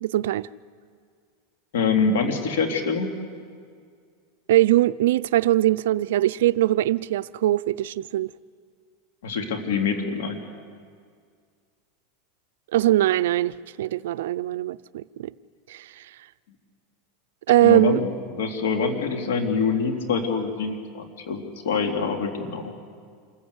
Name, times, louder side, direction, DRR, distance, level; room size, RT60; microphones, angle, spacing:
voice 1, 0.0-0.5 4.5-8.3 12.7-15.3 15.7-16.0 17.5-18.0, right 14 dB, 85° right, 0.5 m, -21 dB
voice 2, 1.7-3.1 9.2-10.4 17.6-22.7, left 5 dB, 90° left, 2.9 m, -25 dB
27.0 x 14.5 x 8.1 m
supercardioid pair, 145°, 0 cm